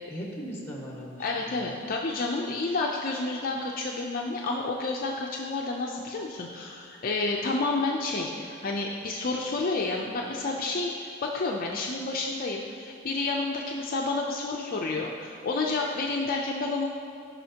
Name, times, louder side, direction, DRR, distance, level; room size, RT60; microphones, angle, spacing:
voice 1, 0.1-1.8, equal, 10° left, -2 dB, 1.5 m, -39 dB
voice 2, 1.2-16.9, left 3 dB, 45° left, 0 dB, 0.5 m, -30 dB
14.5 x 5.6 x 2.8 m, 2.5 s
head